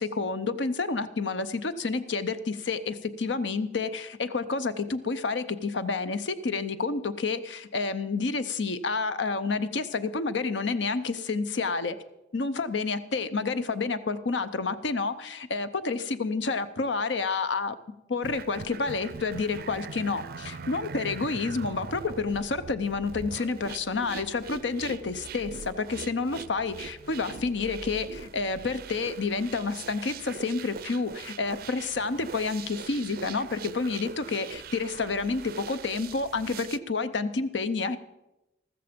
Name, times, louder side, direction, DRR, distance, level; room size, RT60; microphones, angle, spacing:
voice 1, 0.0-12.0 12.3-17.8 18.1-38.0, left 4 dB, 80° left, 12 dB, 0.7 m, -29 dB
sound 1, 18.2-36.8, right 5 dB, 55° right, 0.5 m, -42 dB
sound 2, 22.6-27.9, right 1 dB, 35° left, 2.1 m, -53 dB
14.0 x 13.5 x 5.2 m, 0.94 s
head